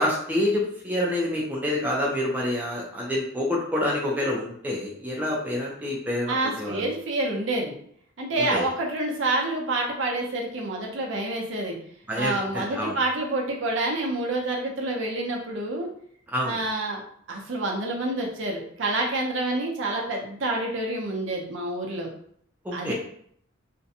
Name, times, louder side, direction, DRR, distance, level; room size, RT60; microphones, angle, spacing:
voice 1, 0.0-6.9 8.4-8.6 12.1-12.9 16.3-16.6 22.6-22.9, left 1 dB, 10° right, -3 dB, 0.4 m, -27 dB
voice 2, 6.3-7.7 8.2-11.7 12.2-15.9 16.4-17.0 17.3-22.1 22.7-22.9, right 2 dB, 65° right, 0 dB, 0.6 m, -28 dB
2.5 x 2.1 x 2.6 m, 0.64 s
head